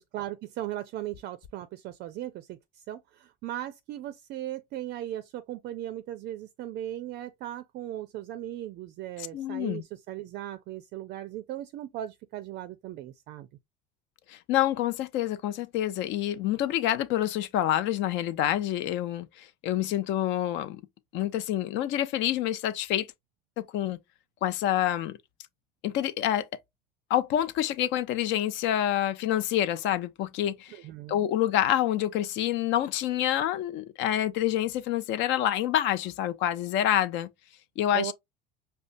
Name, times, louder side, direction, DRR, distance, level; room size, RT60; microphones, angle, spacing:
voice 1, 0.0-13.5 30.7-31.3 37.9-38.1, right 13 dB, 50° right, 0.4 m, -38 dB
voice 2, 9.3-9.8 14.3-20.8 21.1-23.1 23.6-24.0 24.4-25.2 25.8-26.5 27.1-30.8 31.1-37.3 37.8-38.1, left 12 dB, 60° left, 0.5 m, -27 dB
5.0 x 2.2 x 2.5 m
supercardioid pair, 100°, 21 cm